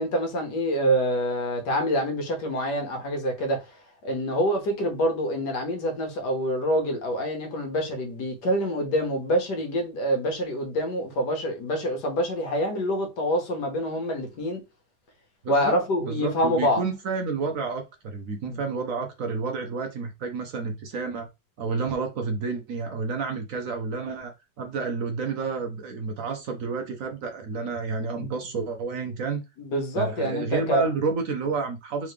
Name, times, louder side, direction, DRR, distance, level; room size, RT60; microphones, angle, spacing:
voice 1, 0.0-3.8 4.0-14.6 15.5-16.8 18.5-18.6 28.1-28.3 29.6-30.9, equal, 70° left, 1.7 m, -26 dB
voice 2, 15.4-21.3 21.6-24.3 24.6-29.4 30.0-32.1, right 4 dB, 60° right, 1.0 m, -30 dB
3.7 x 3.5 x 3.2 m
omnidirectional pair, 1.8 m